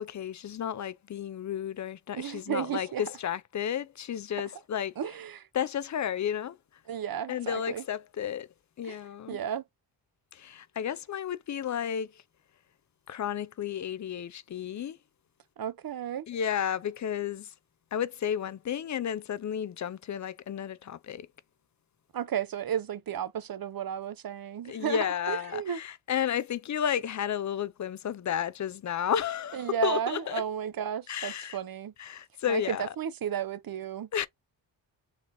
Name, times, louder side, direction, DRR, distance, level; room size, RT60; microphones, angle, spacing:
voice 1, 0.0-4.9 5.5-6.6 7.3-8.5 8.8-9.4 10.3-12.2 13.1-15.0 16.3-17.5 17.9-21.3 24.6-30.4 31.1-31.6 32.0-32.9 34.1-34.3, left 9 dB, 40° left, 0.5 m, -32 dB
voice 2, 2.1-3.0 5.0-5.5 6.9-7.8 8.8-9.0 9.3-9.6 15.6-16.3 22.1-25.8 29.5-31.9 32.5-34.1, right 9 dB, 50° right, 0.7 m, -33 dB
4.1 x 3.3 x 2.6 m
cardioid pair, 70°, 45 cm